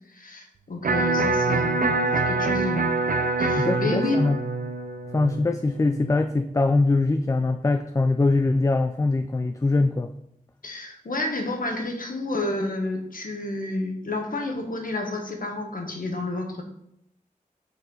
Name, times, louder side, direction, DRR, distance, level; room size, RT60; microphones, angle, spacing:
voice 1, 0.1-2.9 3.4-4.2 10.6-16.6, left 2 dB, 70° left, 2 dB, 1.4 m, -30 dB
Electric guitar, 0.8-6.9, right 3 dB, 75° right, 0.7 m, -25 dB
voice 2, 3.6-4.4 5.1-10.1, left 3 dB, 20° left, 8 dB, 0.3 m, -22 dB
6.6 x 4.4 x 5.3 m, 0.77 s
wide cardioid pair, 75°, 15 cm